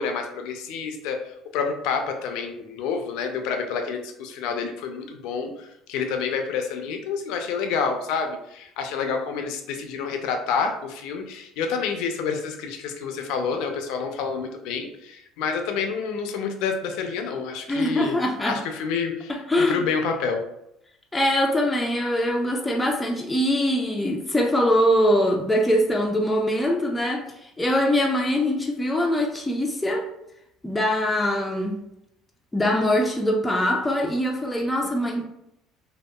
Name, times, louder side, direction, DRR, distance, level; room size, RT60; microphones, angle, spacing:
voice 1, 0.0-18.2 18.5-20.4, left 5 dB, 80° left, 0.4 m, -28 dB
voice 2, 17.7-18.6 19.3-19.8 21.1-30.1 30.6-31.8 32.5-35.3, equal, 10° left, 0.3 m, -23 dB
2.7 x 2.2 x 2.2 m
cardioid pair, 125°, 0 cm